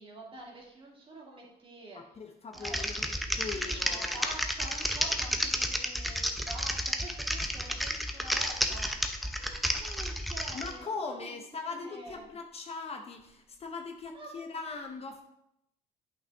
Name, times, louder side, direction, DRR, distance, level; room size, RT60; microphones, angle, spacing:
voice 1, 0.0-2.0 2.5-2.8 3.5-12.2 14.1-14.3, right 1 dB, 30° right, -2 dB, 2.3 m, -47 dB
voice 2, 1.9-4.3 10.5-15.2, left 4 dB, 35° left, 4 dB, 0.8 m, -40 dB
Typing, 2.5-10.7, equal, ahead, 0.7 m, -31 dB
8.6 x 5.7 x 3.4 m, 0.80 s
cardioid pair, 110°, 17 cm